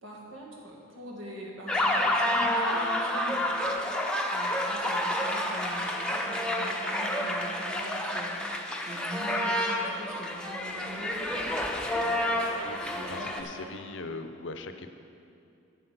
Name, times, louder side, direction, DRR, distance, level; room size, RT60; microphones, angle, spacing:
voice 1, 0.0-3.7 4.3-8.4 8.9-11.3 12.0-12.6 12.9-14.0, right 1 dB, 85° right, -2 dB, 1.9 m, -42 dB
sound 1, 1.7-13.4, left 1 dB, 5° left, 0.6 m, -29 dB
voice 2, 12.6-14.9, left 3 dB, 70° left, 7 dB, 0.6 m, -40 dB
8.5 x 7.9 x 5.9 m, 2.6 s
head